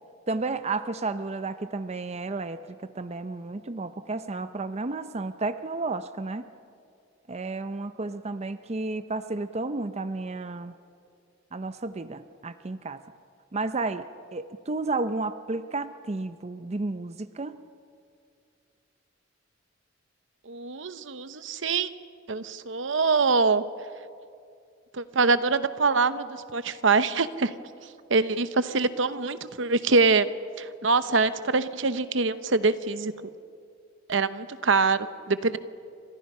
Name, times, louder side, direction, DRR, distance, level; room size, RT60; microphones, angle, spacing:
voice 1, 0.3-6.5 7.3-10.7 11.5-13.0 13.5-17.6, right 3 dB, 35° right, 11 dB, 0.6 m, -32 dB
voice 2, 20.5-21.9 22.3-23.6 24.9-27.5 28.1-30.3 30.6-33.1 34.1-35.6, right 4 dB, 70° right, 13 dB, 0.9 m, -24 dB
29.0 x 25.5 x 5.6 m, 2.4 s
head